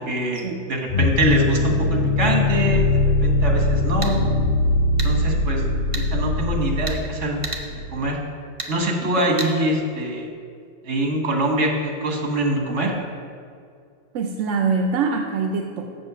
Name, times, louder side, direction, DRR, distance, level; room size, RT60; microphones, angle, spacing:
voice 1, 0.0-4.2 5.0-5.6 5.9-7.4 7.9-8.2 8.7-10.3 10.8-12.9, right 1 dB, 70° right, 1 dB, 1.6 m, -24 dB
sound 1, 0.9-8.1, left 3 dB, 55° left, 0.6 m, -21 dB
sound 2, 3.8-4.1 5.0-5.1 5.9-6.1 6.9-7.0 7.4-7.6 8.6-8.7 9.4-9.5, right 3 dB, 30° right, 0.8 m, -30 dB
voice 2, 14.1-16.0, right 4 dB, 90° right, 3 dB, 1.0 m, -24 dB
7.7 x 6.3 x 6.0 m, 2.3 s
omnidirectional pair, 1.2 m